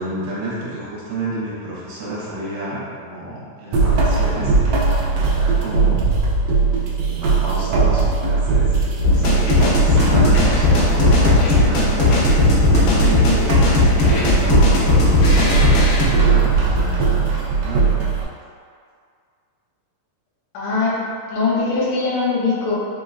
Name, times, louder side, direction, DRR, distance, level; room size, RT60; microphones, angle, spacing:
voice 1, 0.0-4.5 5.1-6.1 7.0-8.8 9.0-18.0, right 1 dB, 65° right, -8 dB, 2.2 m, -30 dB
sound 1, 3.7-18.2, right 4 dB, 90° right, 1.5 m, -19 dB
sound 2, 9.0-16.1, left 3 dB, 90° left, 2.2 m, -17 dB
voice 2, 20.5-21.0 21.3-22.7, left 4 dB, 70° left, -7 dB, 1.2 m, -21 dB
5.0 x 3.0 x 2.4 m, 2.2 s
omnidirectional pair, 3.6 m